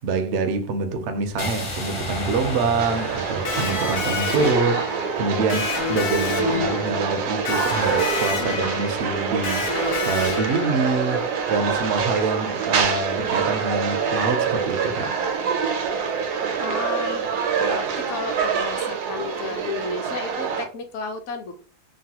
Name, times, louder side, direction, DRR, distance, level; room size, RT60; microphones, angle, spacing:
voice 1, 0.0-9.7 10.0-15.1, right 4 dB, 70° right, 0.6 m, -25 dB
sound 1, 1.4-5.4, equal, 35° left, 0.4 m, -33 dB
sound 2, 2.8-20.6, right 6 dB, 85° right, 1.1 m, -26 dB
Electric guitar, 3.4-11.1, left 5 dB, 90° left, 1.2 m, -29 dB
voice 2, 16.6-17.3 17.6-21.6, left 4 dB, 65° left, 0.8 m, -32 dB
3.1 x 2.2 x 2.8 m
omnidirectional pair, 1.6 m